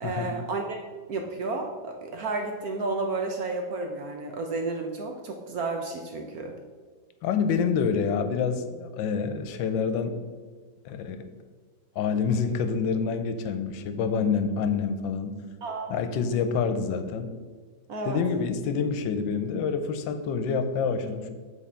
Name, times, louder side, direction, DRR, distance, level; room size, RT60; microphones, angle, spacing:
voice 1, 0.0-0.6 1.1-6.5 15.6-16.0 17.9-18.2, right 3 dB, 65° right, 3 dB, 0.9 m, -31 dB
voice 2, 7.2-10.2 10.8-11.2 12.0-15.4 15.9-17.3 18.0-21.3, left 6 dB, 80° left, 8 dB, 1.3 m, -27 dB
7.2 x 4.2 x 4.3 m, 1.5 s
omnidirectional pair, 2.1 m